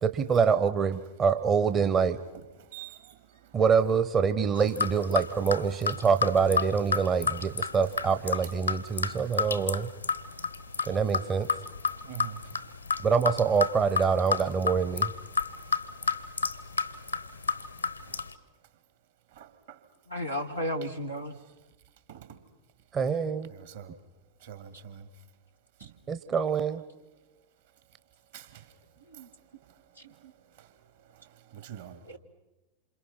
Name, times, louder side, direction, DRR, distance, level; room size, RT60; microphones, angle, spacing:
voice 1, 0.0-2.2 3.5-9.9 10.9-11.5 13.0-15.1 22.9-23.5 26.1-26.8, right 6 dB, 25° right, 11 dB, 0.9 m, -25 dB
voice 2, 2.3-3.6 7.1-7.8 8.4-11.0 11.9-13.0 15.5-16.2 16.6-16.7 17.1-17.2 17.5-17.7 18.1-18.2 19.3-19.8 21.4-21.5 22.1-22.4 23.5-24.0 24.4-25.1 25.8-26.0 28.3-28.8 29.1-29.3 29.6-32.2, right 10 dB, 60° right, 10 dB, 2.3 m, -49 dB
sound 1, 4.6-18.3, left 5 dB, 80° left, 1.0 m, -31 dB
voice 3, 20.1-21.3 25.8-25.9 29.1-29.3 30.0-30.3 32.0-32.2, equal, 85° right, 2 dB, 1.4 m, -34 dB
27.5 x 27.5 x 5.8 m, 1.1 s
figure-of-eight pair, 90°, 0 cm